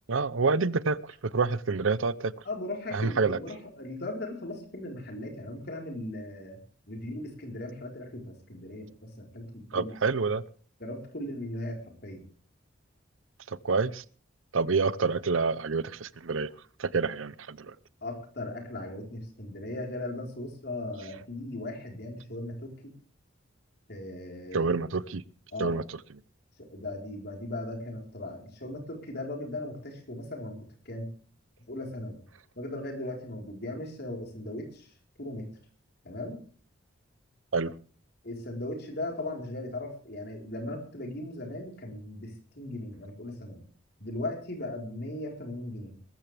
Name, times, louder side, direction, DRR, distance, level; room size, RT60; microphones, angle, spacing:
voice 1, 0.1-2.3 2.9-3.4 9.7-10.4 13.5-14.0 14.5-16.5 16.8-17.7 24.5-25.2 25.6-25.8 37.5-37.7, right 4 dB, 80° right, 0.7 m, -27 dB
voice 2, 2.4-6.6 6.9-9.9 10.8-12.2 18.0-22.9 23.9-24.7 25.5-25.8 26.6-31.1 31.7-32.2 32.6-34.9 35.2-35.5 36.0-36.4 38.2-43.6 44.0-46.0, left 1 dB, 55° left, 4.3 m, -38 dB
21.0 x 14.0 x 3.4 m
head